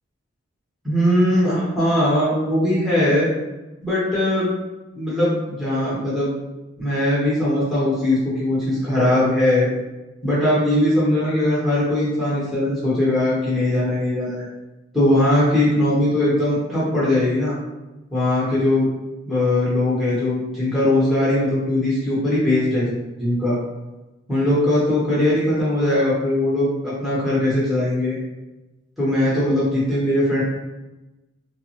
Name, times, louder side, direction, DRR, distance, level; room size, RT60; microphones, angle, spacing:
voice 1, 0.8-3.3 3.8-4.5 4.9-6.3 6.8-9.7 10.2-14.4 14.9-17.6 18.1-18.9 19.3-23.6 24.3-28.2 29.0-30.4, left 1 dB, ahead, -10 dB, 0.8 m, -20 dB
3.4 x 2.0 x 2.7 m, 1.1 s
head